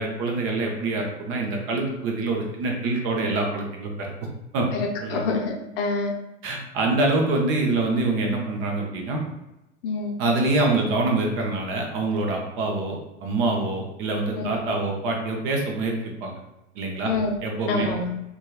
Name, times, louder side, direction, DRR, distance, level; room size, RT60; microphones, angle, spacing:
voice 1, 0.0-4.1 4.5-4.7 5.0-5.2 6.4-9.2 10.2-16.3 16.8-17.1 17.4-17.9, right 2 dB, 35° right, 1 dB, 0.6 m, -25 dB
voice 2, 4.7-6.2 9.8-10.2 14.4-14.5 17.1-17.4 17.7-18.1, left 3 dB, 50° left, 1 dB, 0.6 m, -26 dB
2.8 x 2.3 x 2.3 m, 0.93 s
hypercardioid pair, 100°, 36 cm